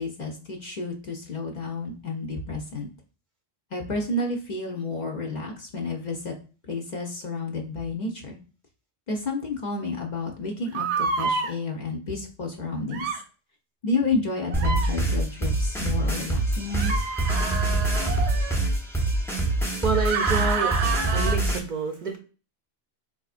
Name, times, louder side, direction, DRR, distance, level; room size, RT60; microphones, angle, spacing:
voice 1, 0.0-2.9 3.7-6.3 6.7-8.4 9.1-13.1 13.8-17.1, left 3 dB, 50° left, 2 dB, 0.6 m, -31 dB
sound 1, 10.7-11.5 12.9-13.2 14.5-14.9 16.7-18.6 19.9-21.4, right 4 dB, 90° right, 0.9 m, -28 dB
sound 2, 14.5-21.6, right 2 dB, 5° left, 0.4 m, -25 dB
voice 2, 19.6-20.7 21.1-22.2, right 4 dB, 55° right, 2 dB, 0.5 m, -28 dB
4.1 x 2.5 x 2.4 m, 0.36 s
omnidirectional pair, 1.1 m